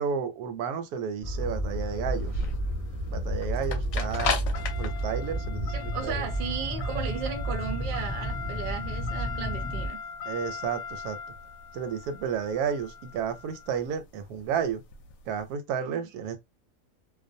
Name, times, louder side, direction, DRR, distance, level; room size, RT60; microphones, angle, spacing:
voice 1, 0.0-2.4 3.1-4.4 4.8-6.3 10.3-11.2 11.7-14.8 15.3-16.4, right 7 dB, 90° right, 1.1 m, -32 dB
sound 1, 1.2-9.9, equal, 15° left, 0.8 m, -31 dB
sound 2, 1.3-15.4, left 5 dB, 70° left, 0.9 m, -38 dB
voice 2, 5.7-10.0 15.8-16.0, right 7 dB, 65° right, 0.5 m, -35 dB
2.5 x 2.1 x 2.6 m
omnidirectional pair, 1.6 m